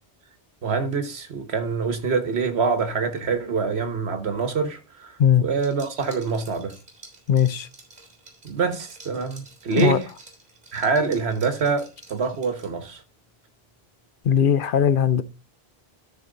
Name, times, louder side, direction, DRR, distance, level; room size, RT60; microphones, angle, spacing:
voice 1, 0.6-6.7 8.4-10.1 10.7-13.0, right 5 dB, 80° right, 1.5 m, -25 dB
Liquid, 5.5-12.9, right 2 dB, 50° right, 3.6 m, -49 dB
voice 2, 7.3-7.7 9.7-10.0 14.2-15.2, left 8 dB, 60° left, 0.8 m, -19 dB
13.0 x 4.4 x 3.9 m
omnidirectional pair, 1.1 m